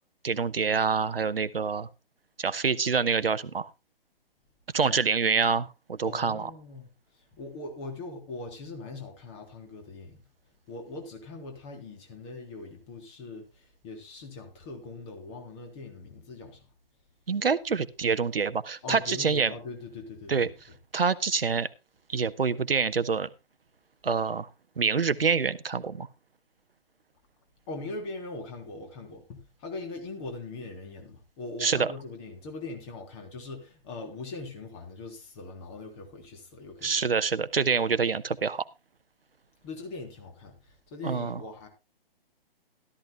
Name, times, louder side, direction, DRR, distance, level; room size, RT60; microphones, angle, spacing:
voice 1, 0.2-1.9 2.4-3.7 4.7-6.5 17.3-19.5 20.3-20.5 20.9-21.7 22.1-23.3 24.0-24.5 24.8-26.1 31.6-31.9 36.8-38.6 41.0-41.4, right 5 dB, 70° right, 1.0 m, -26 dB
voice 2, 6.0-6.9 7.3-10.2 10.7-16.6 18.8-20.5 27.7-36.9 39.6-41.7, left 3 dB, 30° left, 3.4 m, -41 dB
16.5 x 13.0 x 2.3 m
figure-of-eight pair, 130°, 30 cm